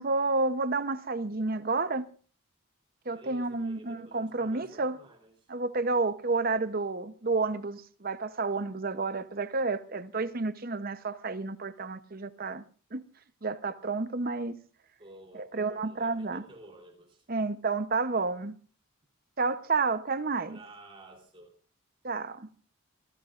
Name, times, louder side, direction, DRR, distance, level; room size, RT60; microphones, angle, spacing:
voice 1, 0.0-2.1 3.1-5.0 5.5-12.6 12.9-13.0 13.4-14.6 15.4-16.4 17.3-18.6 19.4-20.6 22.0-22.5, right 3 dB, 45° right, 0.8 m, -30 dB
voice 2, 3.1-5.5 15.0-17.3 20.5-21.5, right 2 dB, 25° right, 3.7 m, -52 dB
27.0 x 16.5 x 2.5 m
head